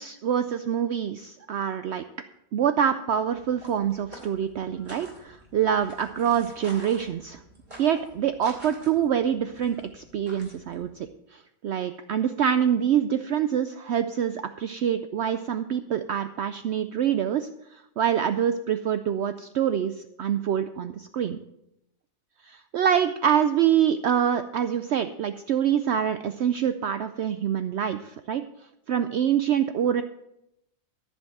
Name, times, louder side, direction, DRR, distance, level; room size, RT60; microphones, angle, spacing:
voice 1, 0.0-2.0 2.5-7.4 7.8-11.1 11.3-21.4 22.5-28.4 28.9-30.0, right 9 dB, 65° right, 10 dB, 0.7 m, -25 dB
sound 1, 3.3-11.0, right 1 dB, 35° right, 3.7 m, -48 dB
14.0 x 5.4 x 7.8 m, 0.82 s
omnidirectional pair, 1.4 m